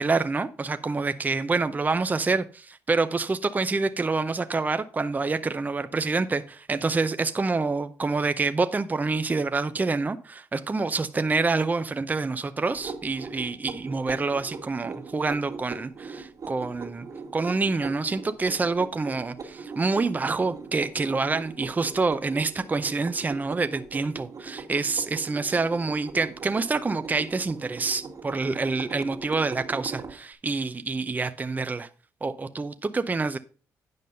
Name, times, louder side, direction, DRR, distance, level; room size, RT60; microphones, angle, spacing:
voice 1, 0.0-17.1 17.3-31.9 32.2-33.4, right 3 dB, 25° right, 0.6 m, -27 dB
sound 1, 12.7-30.2, right 4 dB, 55° right, 1.7 m, -41 dB
9.4 x 5.3 x 5.3 m
cardioid pair, 70°, 7 cm